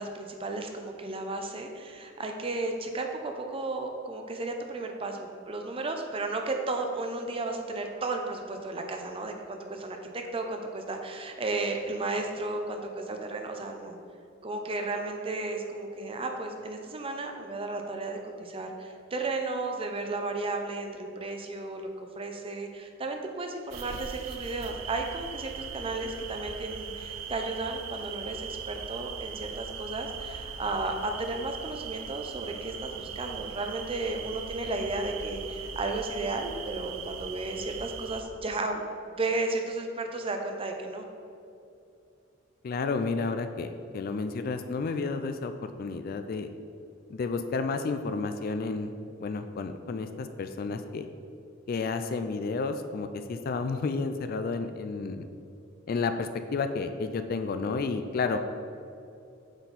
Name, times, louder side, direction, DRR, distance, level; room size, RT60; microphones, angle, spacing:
voice 1, 0.0-14.0 14.4-38.8 39.1-41.0, right 2 dB, 30° right, 4 dB, 0.6 m, -34 dB
sound 1, 23.7-38.2, right 6 dB, 80° right, 0.5 m, -40 dB
voice 2, 42.6-46.5 47.1-48.9 49.2-51.1 51.7-55.3 55.9-58.4, left 4 dB, 45° left, 8 dB, 0.3 m, -31 dB
7.8 x 4.3 x 4.1 m, 2.6 s
head